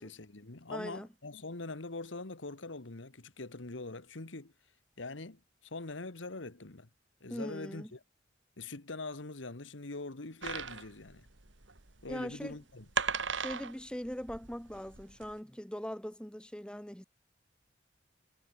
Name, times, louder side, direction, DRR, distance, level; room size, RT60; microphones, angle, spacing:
voice 1, 0.0-4.5 5.0-6.9 7.2-8.0 8.6-11.3 12.0-12.9, left 3 dB, 75° left, 1.6 m, -43 dB
voice 2, 0.7-1.1 7.3-7.9 12.1-12.6 13.3-17.0, equal, 5° left, 1.4 m, -41 dB
sound 1, 10.4-15.3, right 6 dB, 70° right, 2.5 m, -38 dB
head